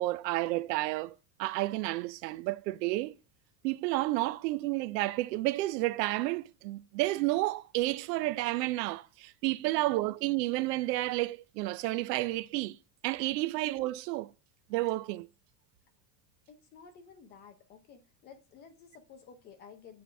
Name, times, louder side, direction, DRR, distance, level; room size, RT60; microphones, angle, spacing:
voice 1, 0.0-3.1 3.6-12.8 13.0-14.3 14.7-15.3, right 18 dB, 85° right, 0.6 m, -31 dB
voice 2, 9.6-10.1 13.4-13.6 16.5-20.0, left 6 dB, 20° left, 0.6 m, -54 dB
7.8 x 3.9 x 3.3 m
cardioid pair, 175°, 48 cm